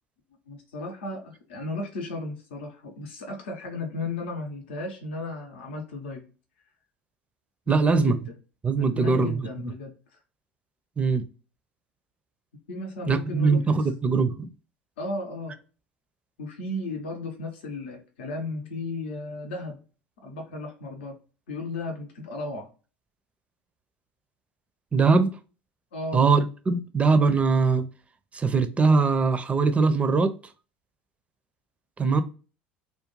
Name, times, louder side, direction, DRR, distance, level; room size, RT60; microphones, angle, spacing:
voice 1, 0.5-6.3 7.7-8.2 8.8-9.9 12.7-13.6 15.0-15.6 16.4-19.8 20.2-21.2 21.5-22.7 25.9-26.2, left 2 dB, 75° left, 0.7 m, -34 dB
voice 2, 7.7-8.2 8.6-9.4 11.0-11.2 13.1-14.5 24.9-25.3 26.1-27.8 28.3-30.3 32.0-32.2, right 4 dB, 20° right, 0.4 m, -21 dB
2.4 x 2.2 x 3.0 m
hypercardioid pair, 75°, 6 cm